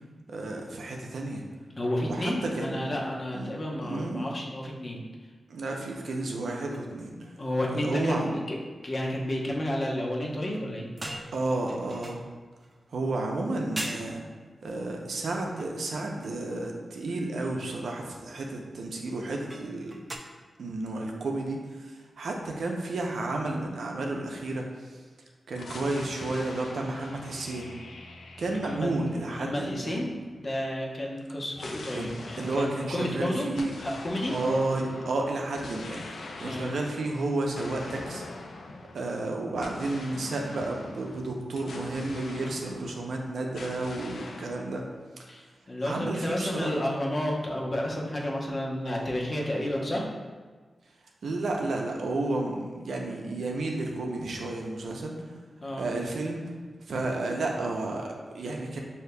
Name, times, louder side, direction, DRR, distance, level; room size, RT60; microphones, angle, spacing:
voice 1, 0.3-1.4 2.0-2.9 3.3-3.5 3.8-4.3 5.5-7.1 7.8-8.3 11.3-12.2 12.9-14.2 14.6-20.0 20.6-25.0 25.5-27.7 28.4-30.0 31.9-32.1 32.4-33.7 34.3-38.2 38.9-44.8 45.2-45.3 45.8-46.8 51.2-55.1 55.8-56.4 56.9-58.8, right 2 dB, 80° right, 1 dB, 0.6 m, -32 dB
voice 2, 1.8-5.0 7.4-8.6 8.8-10.9 28.6-28.9 29.3-33.5 33.8-34.3 36.4-36.7 45.3-50.1 55.6-55.9, left 1 dB, 45° left, -2 dB, 0.8 m, -31 dB
sound 1, 6.7-6.9 7.2-7.4 7.6-8.0 10.5-12.8 13.4-13.5 13.8-14.2 15.2-16.4 16.9-17.1 19.5-20.2, right 1 dB, 20° right, 0.5 m, -41 dB
sound 2, 25.5-30.3 31.5-43.2 43.5-44.6, left 2 dB, 85° left, 0.4 m, -43 dB
6.5 x 2.8 x 2.2 m, 1.4 s
cardioid pair, 75°, 0 cm